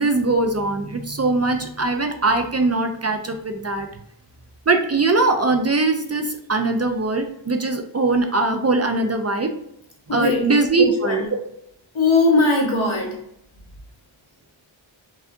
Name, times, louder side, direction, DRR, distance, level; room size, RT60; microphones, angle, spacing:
voice 1, 0.0-3.9 4.7-9.6 10.1-11.3, right 3 dB, 35° right, 5 dB, 0.4 m, -21 dB
voice 2, 10.1-10.4 10.8-11.2 11.9-13.2, left 3 dB, 70° left, -2 dB, 1.4 m, -19 dB
4.8 x 3.4 x 2.7 m, 0.76 s
wide cardioid pair, 90°, 49 cm